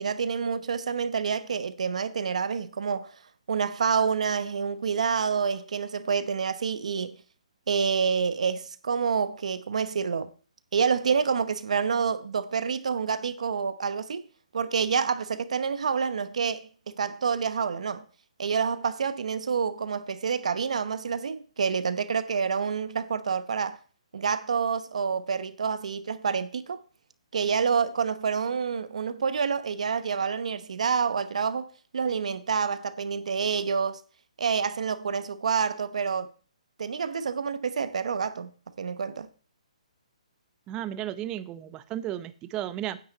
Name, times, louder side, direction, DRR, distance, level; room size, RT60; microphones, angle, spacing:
voice 1, 0.0-3.1 3.5-7.2 7.7-10.3 10.7-14.2 14.5-18.1 18.4-23.8 24.1-26.8 27.3-31.7 31.9-34.0 34.4-36.3 36.8-39.3, right 6 dB, 70° right, 0.9 m, -28 dB
voice 2, 40.7-43.0, right 12 dB, 20° right, 0.6 m, -34 dB
9.7 x 6.0 x 7.6 m
hypercardioid pair, 155°, 4 cm